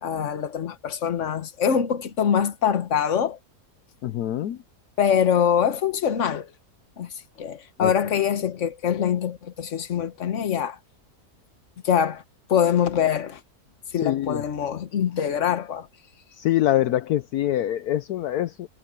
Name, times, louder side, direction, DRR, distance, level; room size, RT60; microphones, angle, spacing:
voice 1, 0.0-3.4 5.0-6.5 7.0-7.1 7.4-10.8 11.8-12.2 12.5-13.4 13.9-15.9, left 8 dB, 50° left, 1.5 m, -24 dB
voice 2, 4.0-4.6 7.8-7.9 14.0-14.4 16.4-18.7, left 13 dB, 75° left, 1.2 m, -24 dB
omnidirectional pair, 1.7 m